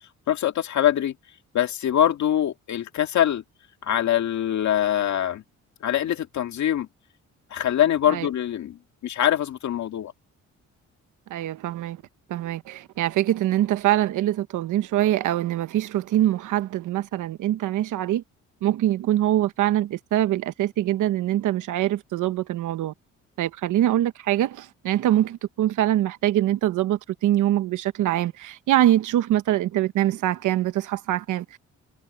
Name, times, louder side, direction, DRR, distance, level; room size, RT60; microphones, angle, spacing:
voice 1, 0.3-1.1 1.5-3.4 3.8-5.4 5.8-6.9 7.5-10.1, left 11 dB, 70° left, 2.1 m, -23 dB
voice 2, 11.3-12.0 12.3-18.2 18.6-22.9 23.4-31.6, right 13 dB, 80° right, 1.1 m, -23 dB
cardioid pair, 90°, 30 cm